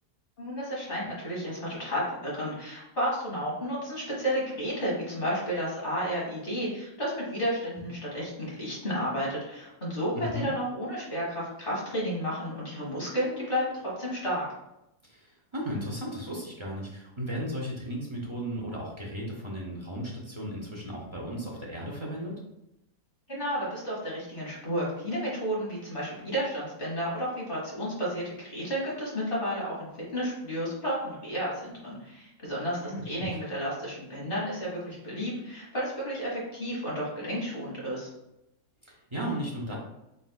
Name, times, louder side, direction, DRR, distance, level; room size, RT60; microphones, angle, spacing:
voice 1, 0.4-14.5 23.3-38.1, equal, 35° left, -6 dB, 1.6 m, -32 dB
voice 2, 10.2-10.5 15.0-22.4 32.8-33.3 38.8-39.7, equal, 45° right, -3 dB, 0.3 m, -35 dB
4.2 x 3.9 x 2.2 m, 0.87 s
omnidirectional pair, 1.7 m